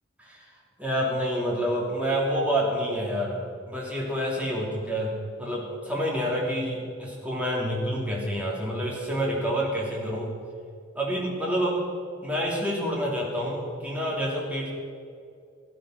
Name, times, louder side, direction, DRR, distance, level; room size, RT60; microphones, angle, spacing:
voice 1, 0.8-10.3 10.9-11.8 12.2-14.7, equal, 5° right, -4 dB, 3.0 m, -28 dB
15.5 x 11.0 x 6.4 m, 2.3 s
head